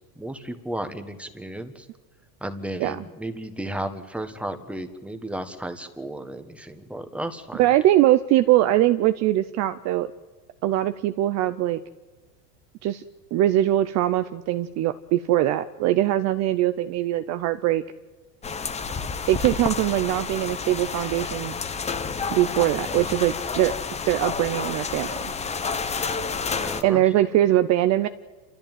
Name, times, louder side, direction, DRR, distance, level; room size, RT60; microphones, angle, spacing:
voice 1, 0.1-1.9 2.4-7.7 22.9-23.1 26.1-27.0, right 1 dB, ahead, 8 dB, 1.4 m, -34 dB
voice 2, 7.6-10.1 10.6-11.8 12.8-13.0 13.3-17.8 19.3-21.5 22.3-23.7 24.1-25.1 26.8-28.1, right 14 dB, 35° right, 11 dB, 0.6 m, -22 dB
sound 1, 18.4-26.8, left 5 dB, 15° left, 0.9 m, -30 dB
27.5 x 14.0 x 9.1 m, 1.3 s
supercardioid pair, 140°, 49 cm